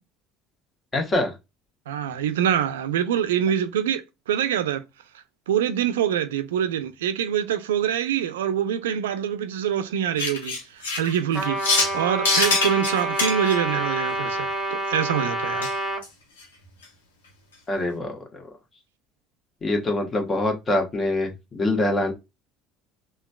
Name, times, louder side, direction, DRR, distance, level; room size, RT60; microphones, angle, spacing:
voice 1, 0.9-1.3 17.7-18.5 19.6-22.1, left 2 dB, 30° left, 1.2 m, -24 dB
voice 2, 1.9-4.8 5.5-15.7, right 9 dB, 80° right, 0.4 m, -25 dB
sound 1, 10.2-12.0 12.3-13.5 15.6-15.7 16.0-16.1 16.4-16.5 16.8-16.9, left 3 dB, 85° left, 0.9 m, -24 dB
Trumpet, 11.3-16.0, right 1 dB, ahead, 1.4 m, -28 dB
3.8 x 2.3 x 2.2 m
hypercardioid pair, 70°, 0 cm